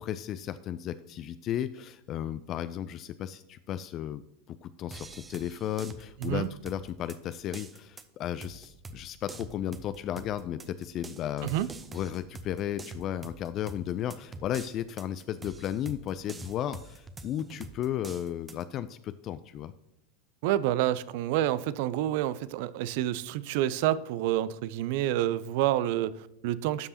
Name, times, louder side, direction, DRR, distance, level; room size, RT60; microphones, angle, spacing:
voice 1, 0.0-4.2 4.5-11.7 11.9-19.7, left 11 dB, 40° left, 13 dB, 0.3 m, -34 dB
sound 1, 4.9-18.6, right 3 dB, 20° right, 0.7 m, -46 dB
voice 2, 20.4-26.9, right 13 dB, 60° right, 18 dB, 0.4 m, -28 dB
12.5 x 5.3 x 2.8 m, 0.88 s
figure-of-eight pair, 90°, 0 cm